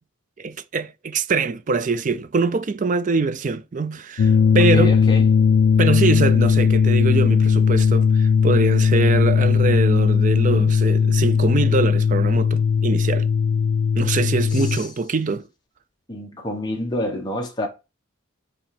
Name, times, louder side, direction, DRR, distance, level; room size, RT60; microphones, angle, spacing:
voice 1, 0.4-4.9 5.8-13.3 14.0-15.5, right 4 dB, 35° right, 0.4 m, -23 dB
sound 1, 4.2-14.8, left 6 dB, 65° left, 0.3 m, -18 dB
voice 2, 4.7-5.3 14.5-14.9 16.1-17.7, left 1 dB, 20° left, 1.3 m, -28 dB
5.6 x 3.9 x 5.9 m
head